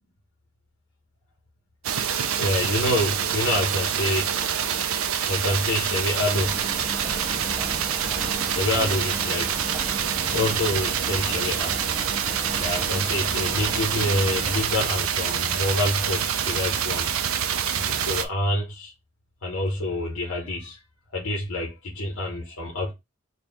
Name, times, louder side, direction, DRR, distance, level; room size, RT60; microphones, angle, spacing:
sound 1, 1.8-18.3, right 8 dB, 80° right, 0.5 m, -26 dB
voice 1, 2.4-4.3 5.3-6.5 8.4-9.5 10.2-11.8 12.6-17.1 17.8-18.9 19.4-20.8 21.1-22.9, left 1 dB, 90° left, 1.1 m, -27 dB
sound 2, 6.3-14.6, right 1 dB, 5° right, 0.6 m, -36 dB
4.3 x 2.4 x 3.5 m
head